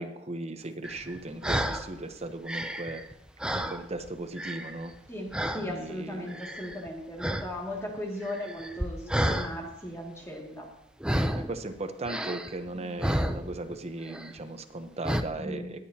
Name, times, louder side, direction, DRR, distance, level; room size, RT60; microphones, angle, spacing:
voice 1, 0.0-3.1 3.5-4.9 5.5-6.3 11.3-15.9, right 2 dB, 35° right, 7 dB, 0.8 m, -37 dB
throat mouth and nasal sounds, 0.8-1.9 2.3-4.1 4.4-5.0 5.3-5.7 6.3-6.9 7.2-7.5 7.8-9.5 11.0-11.5 12.1-13.8 14.1-14.4 15.0-15.2, equal, 5° right, 0.5 m, -31 dB
voice 2, 5.1-10.7 15.3-15.7, left 1 dB, 15° left, -2 dB, 2.2 m, -37 dB
21.5 x 8.5 x 2.8 m, 0.85 s
head